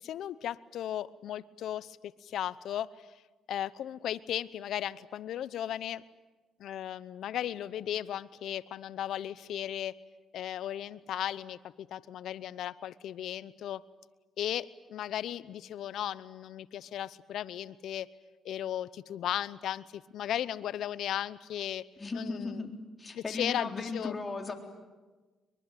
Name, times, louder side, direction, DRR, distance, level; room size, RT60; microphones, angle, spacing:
voice 1, 0.0-2.0 2.2-3.1 3.5-6.0 6.6-9.9 10.3-13.8 14.4-18.1 18.4-21.8 22.1-22.7 23.1-24.1, left 11 dB, 75° left, 18 dB, 0.8 m, -36 dB
voice 2, 22.0-22.7 23.0-24.5, left 3 dB, 25° left, 3 dB, 3.8 m, -36 dB
23.5 x 23.0 x 9.2 m, 1.3 s
cardioid pair, 90°, 0 cm